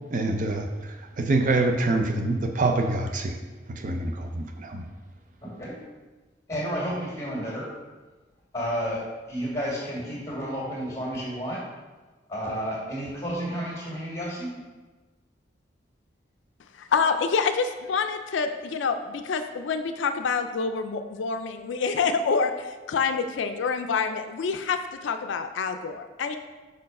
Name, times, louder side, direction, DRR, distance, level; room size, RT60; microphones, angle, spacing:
voice 1, 0.1-3.4 3.7-4.8, right 2 dB, 45° right, 4 dB, 0.5 m, -26 dB
voice 2, 5.4-5.7 6.5-7.7 8.5-11.6 12.3-14.5, equal, 15° left, -5 dB, 2.0 m, -31 dB
voice 3, 16.7-26.4, left 5 dB, 80° left, 8 dB, 0.4 m, -27 dB
5.0 x 4.5 x 5.3 m, 1.3 s
head